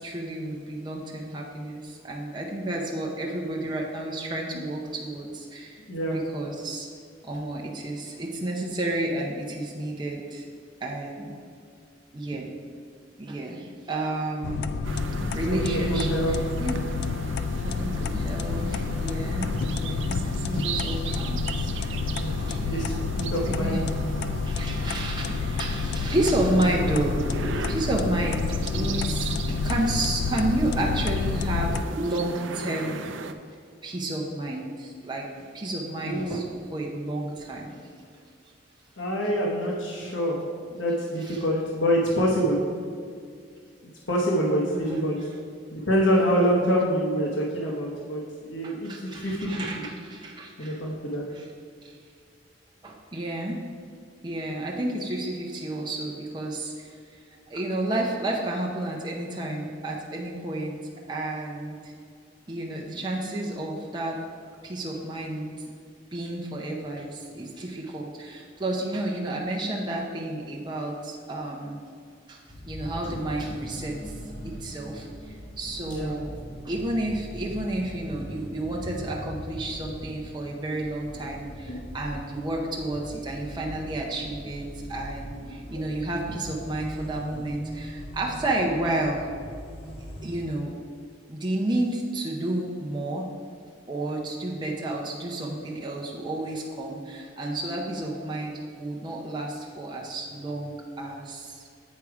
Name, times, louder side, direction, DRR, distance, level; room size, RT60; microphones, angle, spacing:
voice 1, 0.0-5.9 6.1-6.9 7.2-10.5 10.8-11.3 12.1-12.5 13.2-14.7 15.3-16.8 17.6-22.9 23.4-23.8 24.2-33.0 33.8-35.3 35.5-37.8 41.3-41.4 44.7-45.1 48.6-50.8 51.3-51.4 51.8-51.9 52.8-53.6 54.2-60.8 61.1-61.9 62.5-64.2 64.6-65.7 66.1-71.8 72.3-74.2 74.4-76.3 76.6-89.3 90.2-90.7 91.3-93.3 93.9-101.7, right 1 dB, 25° right, -2 dB, 0.6 m, -31 dB
sound 1, 14.4-31.8, left 4 dB, 60° left, 0.3 m, -29 dB
sound 2, 14.8-33.3, right 4 dB, 80° right, 0.5 m, -37 dB
voice 2, 15.5-16.4 22.2-22.3 22.7-23.9 36.0-36.4 39.0-42.6 44.1-45.2 45.7-49.8 50.6-51.2 75.8-76.1 87.3-87.4, equal, 80° left, -2 dB, 1.0 m, -26 dB
sound 3, 72.5-90.5, equal, 30° left, 0.9 m, -41 dB
8.4 x 4.7 x 4.8 m, 2.2 s
head